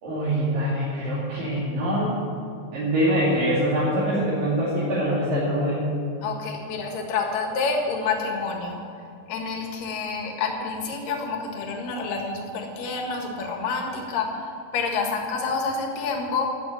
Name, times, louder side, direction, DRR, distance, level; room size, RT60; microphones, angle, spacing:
voice 1, 0.0-2.2 2.7-5.9, equal, 65° right, -9 dB, 4.3 m, -24 dB
voice 2, 6.2-8.8 9.3-16.5, left 4 dB, 70° left, 1 dB, 3.3 m, -28 dB
12.5 x 8.6 x 9.2 m, 2.4 s
omnidirectional pair, 4.3 m